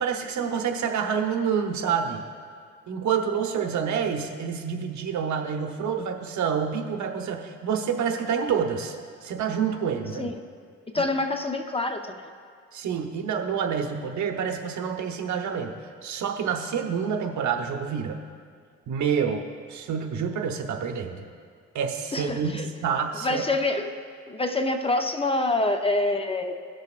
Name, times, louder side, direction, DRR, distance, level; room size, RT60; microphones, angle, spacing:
voice 1, 0.0-2.2 2.9-9.0 9.2-10.3 10.9-11.0 12.7-15.7 16.0-18.2 18.9-19.4 19.7-21.2 21.7-23.4, right 7 dB, 70° right, 3 dB, 1.0 m, -28 dB
voice 2, 10.9-12.3 22.1-22.7 23.1-23.9 24.3-26.5, left 2 dB, 20° left, 5 dB, 0.6 m, -26 dB
19.0 x 6.6 x 2.5 m, 2.1 s
cardioid pair, 90°, 30 cm